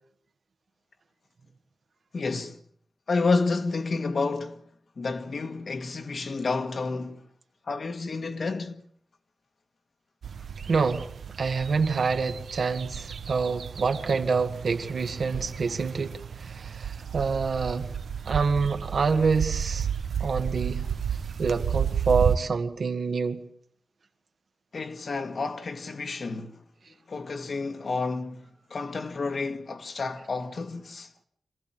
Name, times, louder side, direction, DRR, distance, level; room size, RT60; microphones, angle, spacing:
voice 1, 2.1-2.6 3.1-4.6 5.0-7.2 7.7-8.8 24.7-26.6 26.9-31.1, left 3 dB, 50° left, 1.7 m, -30 dB
sound 1, 10.2-22.4, right 8 dB, 90° right, 1.1 m, -32 dB
voice 2, 10.7-11.1 11.4-16.1 16.4-17.9 18.3-19.9 20.2-20.9 21.4-23.5, right 5 dB, 65° right, 1.9 m, -26 dB
26.5 x 16.5 x 9.0 m
wide cardioid pair, 145°, 0 cm